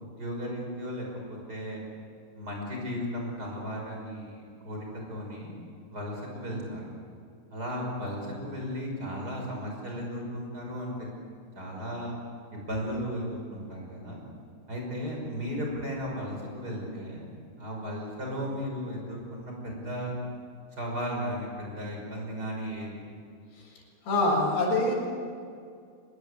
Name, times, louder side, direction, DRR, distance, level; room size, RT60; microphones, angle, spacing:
voice 1, 0.0-1.8 2.3-5.5 5.9-6.9 7.5-10.9 11.5-12.2 12.5-14.2 14.7-17.2 17.6-20.1 20.8-23.0, equal, 20° right, -1 dB, 6.0 m, -35 dB
voice 2, 24.0-24.9, left 2 dB, 80° left, -3 dB, 7.7 m, -24 dB
24.0 x 20.5 x 8.3 m, 2.3 s
omnidirectional pair, 4.7 m